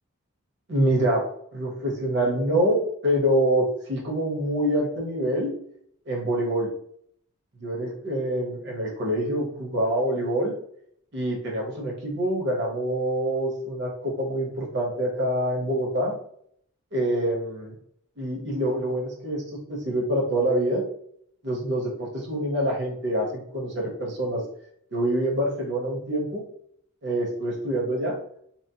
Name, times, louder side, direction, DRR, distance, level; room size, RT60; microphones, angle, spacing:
voice 1, 0.7-1.2 1.5-5.5 6.1-6.7 7.6-10.5 11.1-16.2 16.9-17.7 18.2-19.4 19.7-20.8 21.4-24.4 24.9-26.4 27.0-28.2, right 1 dB, 55° right, -2 dB, 0.9 m, -26 dB
2.9 x 2.0 x 2.7 m, 0.67 s
head